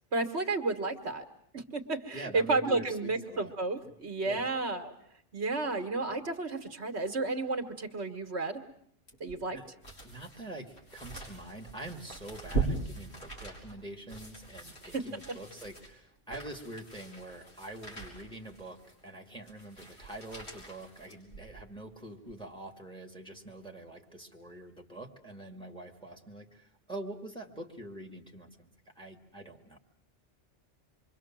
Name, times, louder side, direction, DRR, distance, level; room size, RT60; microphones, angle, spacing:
voice 1, 0.1-1.2 1.5-4.9 5.3-8.6 9.2-9.6 14.9-15.2, right 3 dB, 65° right, 6 dB, 1.8 m, -32 dB
voice 2, 2.1-3.6 4.3-4.5 9.5-9.7 10.0-28.7 29.0-29.8, right 1 dB, 5° left, 2 dB, 2.2 m, -45 dB
sound 1, 9.1-21.7 22.2-22.3, right 3 dB, 65° left, 5.5 m, -40 dB
26.5 x 23.5 x 7.5 m, 0.66 s
omnidirectional pair, 1.2 m